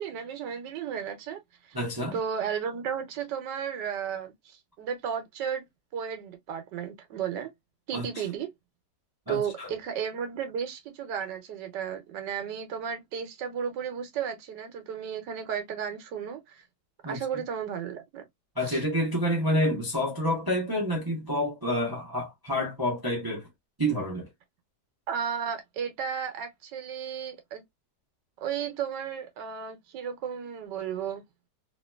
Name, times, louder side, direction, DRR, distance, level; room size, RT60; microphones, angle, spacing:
voice 1, 0.0-1.4 1.7-1.8 2.1-5.6 5.9-7.5 7.9-8.5 9.3-16.6 17.1-18.2 18.6-18.8 25.1-27.6 28.4-31.2, right 7 dB, 85° right, 1.5 m, -34 dB
voice 2, 1.7-2.2 7.9-8.0 9.3-9.7 17.0-17.2 18.6-23.5 23.8-24.3, equal, 20° right, 0.7 m, -28 dB
3.0 x 2.9 x 2.2 m
omnidirectional pair, 1.8 m